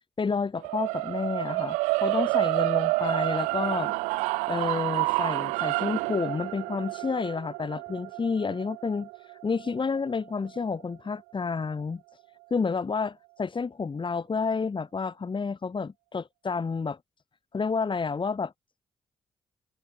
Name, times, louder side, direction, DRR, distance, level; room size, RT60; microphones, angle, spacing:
voice 1, 0.2-3.9 4.5-9.1 9.4-12.0 12.5-17.0 17.5-18.5, left 5 dB, 40° left, 5.9 m, -30 dB
sound 1, 0.6-10.8, right 26 dB, 85° right, 1.1 m, -29 dB
hypercardioid pair, 45°, 12 cm